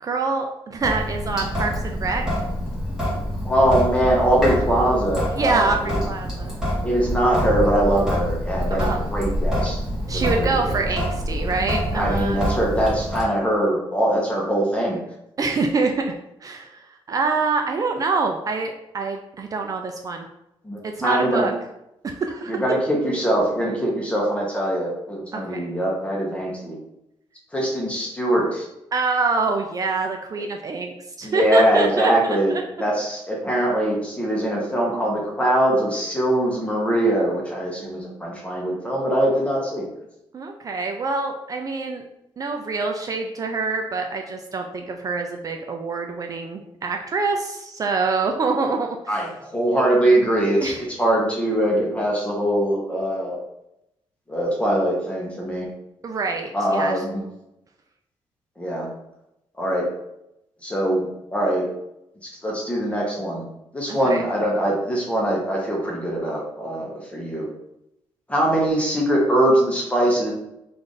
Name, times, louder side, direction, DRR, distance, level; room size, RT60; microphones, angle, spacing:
voice 1, 0.0-2.2 5.4-6.5 8.7-9.0 10.1-12.5 15.4-16.0 16.4-20.3 20.8-21.5 22.0-22.6 25.3-25.7 28.9-32.6 40.3-42.0 42.4-49.2 50.6-50.8 56.0-57.0 63.9-64.2, right 4 dB, 35° right, 3 dB, 0.4 m, -25 dB
Sink (filling or washing) / Drip, 0.8-13.2, equal, 5° right, 1.5 m, -26 dB
voice 2, 3.4-6.0 6.8-9.8 10.1-10.9 11.9-15.0 20.6-21.5 22.5-26.7 27.5-28.7 31.2-32.5 32.8-39.8 49.1-53.4 54.3-55.7 56.5-57.2 58.6-58.9 59.6-59.9 60.6-61.7 62.2-63.5 63.7-67.5 68.3-70.3, right 1 dB, 10° left, -2 dB, 0.8 m, -22 dB
3.3 x 2.5 x 3.8 m, 0.84 s
cardioid pair, 125°, 10 cm